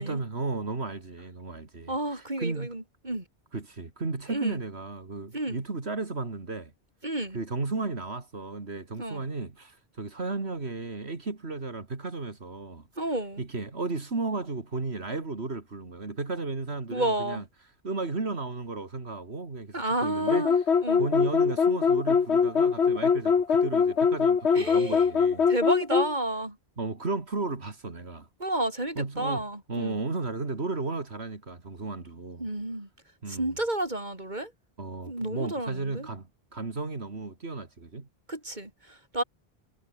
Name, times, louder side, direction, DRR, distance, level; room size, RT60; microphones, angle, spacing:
voice 1, 0.0-2.7 3.5-6.7 7.3-12.9 13.4-17.4 17.8-20.5 21.0-25.5 26.8-28.3 29.0-32.5 33.2-33.6 34.8-38.1, right 3 dB, 75° right, 2.9 m, -34 dB
voice 2, 1.9-3.2 4.3-4.6 5.3-5.6 7.0-7.4 9.0-9.2 13.0-13.4 16.9-17.4 19.7-21.0 24.5-25.0 25.5-26.6 28.4-30.0 32.4-32.9 33.3-34.5 35.1-36.1 38.3-39.2, right 1 dB, 45° right, 5.5 m, -31 dB
sound 1, 20.3-26.1, left 6 dB, 90° left, 1.7 m, -22 dB
omnidirectional pair, 1.1 m